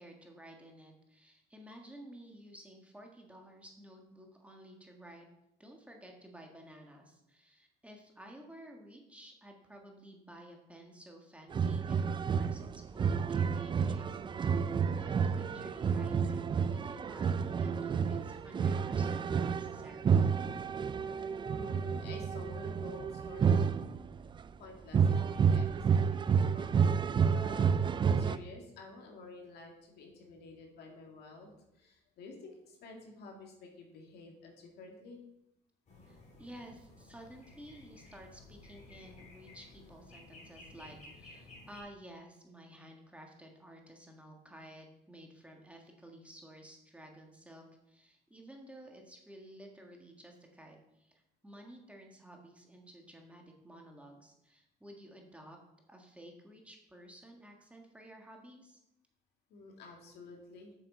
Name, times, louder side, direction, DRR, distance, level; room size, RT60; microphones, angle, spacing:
voice 1, 0.0-5.3 5.6-20.3 36.1-55.6 55.9-58.8, right 1 dB, 5° right, 1 dB, 1.6 m, -53 dB
sound 1, 11.5-24.4 24.9-28.4, right 6 dB, 30° right, 0.4 m, -30 dB
voice 2, 21.4-23.7 24.6-26.8 27.1-31.5 31.7-35.2 59.5-60.7, left 3 dB, 70° left, 1 dB, 2.2 m, -51 dB
sound 2, 35.9-41.8, left 2 dB, 45° left, 3.3 m, -55 dB
7.4 x 6.5 x 5.3 m, 0.83 s
cardioid pair, 110°, 17 cm